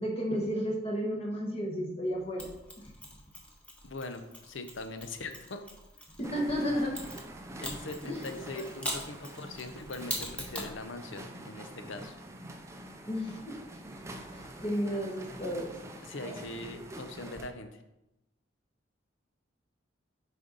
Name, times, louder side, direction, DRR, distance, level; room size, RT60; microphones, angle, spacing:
voice 1, 0.0-2.5 6.2-6.9 8.0-8.2 13.0-13.6 14.3-15.7, equal, 30° left, -1 dB, 1.1 m, -32 dB
Mechanisms, 2.4-6.2 6.9-10.8, equal, 5° left, 1.0 m, -41 dB
voice 2, 3.8-5.6 7.6-12.2 16.0-17.8, left 2 dB, 75° left, 7 dB, 0.7 m, -41 dB
sound 1, 6.2-17.5, right 1 dB, 15° right, 0.5 m, -46 dB
6.6 x 5.2 x 4.0 m, 0.90 s
head